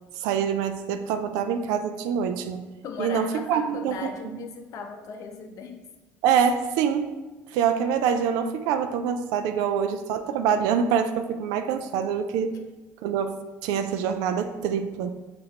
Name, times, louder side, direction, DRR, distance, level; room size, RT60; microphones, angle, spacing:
voice 1, 0.2-2.6 3.0-4.4 6.2-7.1 7.5-12.5 13.0-15.1, right 7 dB, 80° right, 8 dB, 0.4 m, -25 dB
voice 2, 2.8-5.9 12.5-12.6, left 5 dB, 60° left, 5 dB, 0.6 m, -38 dB
6.1 x 2.5 x 2.9 m, 1.2 s
supercardioid pair, 90°, 6 cm